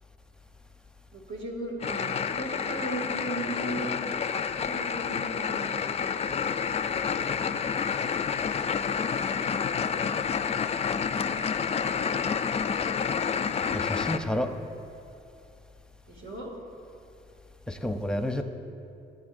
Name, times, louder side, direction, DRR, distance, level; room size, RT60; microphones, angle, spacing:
voice 1, 1.1-3.9 4.6-6.4 7.2-7.7 9.3-9.7 16.1-16.5, right 1 dB, 75° right, 2.4 m, -37 dB
sound 1, 1.8-14.2, left 6 dB, 30° left, 0.4 m, -29 dB
voice 2, 13.7-14.5 17.7-18.4, left 1 dB, 5° left, 0.7 m, -30 dB
18.5 x 8.1 x 2.6 m
cardioid pair, 90°, 20 cm